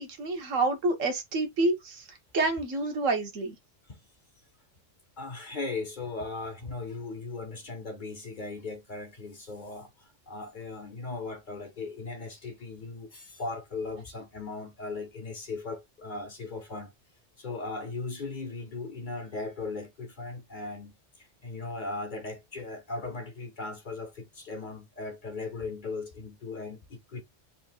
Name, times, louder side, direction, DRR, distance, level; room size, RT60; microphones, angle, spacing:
voice 1, 0.0-2.0 2.3-3.5, right 2 dB, 85° right, 1.5 m, -28 dB
voice 2, 5.2-16.9 17.4-27.2, left 3 dB, 45° left, 0.8 m, -38 dB
4.1 x 3.6 x 2.3 m
omnidirectional pair, 1.3 m